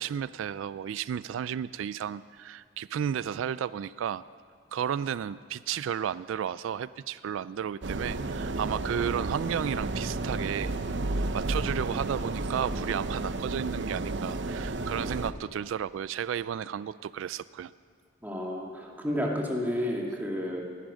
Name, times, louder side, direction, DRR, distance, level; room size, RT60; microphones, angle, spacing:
voice 1, 0.0-4.2 4.7-10.7 11.3-17.7, right 8 dB, 85° right, 17 dB, 0.3 m, -33 dB
sound 1, 7.8-15.3, right 2 dB, 65° right, 0.7 m, -32 dB
voice 2, 18.2-20.6, equal, 10° right, -1 dB, 2.1 m, -31 dB
19.5 x 11.5 x 6.2 m, 2.1 s
head